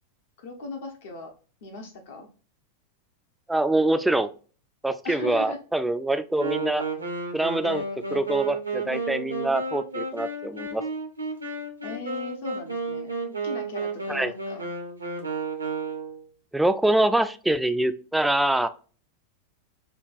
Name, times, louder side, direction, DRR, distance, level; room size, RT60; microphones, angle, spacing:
voice 1, 0.4-1.3 1.6-2.3 5.0-5.6 11.8-13.1 13.4-14.6, left 2 dB, 55° left, 5 dB, 0.8 m, -38 dB
voice 2, 3.5-4.3 4.8-6.8 7.3-7.9 8.1-10.8 14.1-14.3 16.5-18.7, right 1 dB, 5° right, 10 dB, 0.3 m, -24 dB
Wind instrument woodwind instrument, 6.4-16.3, right 3 dB, 80° right, 0.7 m, -32 dB
5.4 x 2.3 x 2.5 m, 0.37 s
figure-of-eight pair, 90°, 0 cm